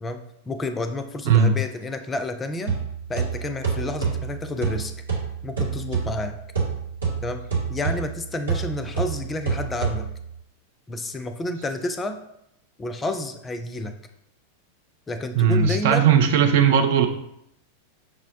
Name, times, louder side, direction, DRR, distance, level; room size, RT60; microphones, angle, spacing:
voice 1, 0.5-2.7 3.1-4.9 5.4-6.3 7.2-10.1 10.9-12.2 12.8-13.9 15.1-16.2, left 1 dB, 15° left, 8 dB, 0.4 m, -30 dB
voice 2, 1.2-1.6 15.3-17.1, right 7 dB, 50° right, 5 dB, 0.4 m, -18 dB
sound 1, 2.7-10.4, right 5 dB, 75° right, 1.2 m, -28 dB
6.0 x 2.0 x 2.6 m, 0.79 s
figure-of-eight pair, 90°, 0 cm